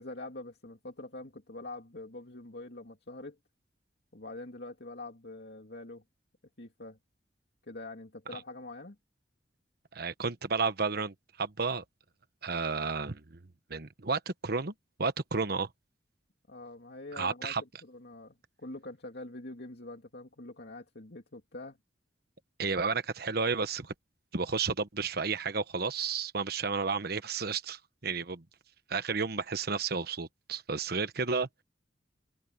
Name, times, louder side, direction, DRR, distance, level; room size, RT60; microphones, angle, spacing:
voice 1, 0.0-3.4 4.1-6.0 6.6-7.0 7.6-9.0 16.5-21.8, left 2 dB, 65° left, 2.6 m, -45 dB
voice 2, 9.9-11.8 12.4-13.4 13.7-14.7 15.0-15.7 17.2-17.6 22.6-23.9 24.3-28.4 28.9-31.5, right 4 dB, 60° right, 1.2 m, -32 dB
open air
head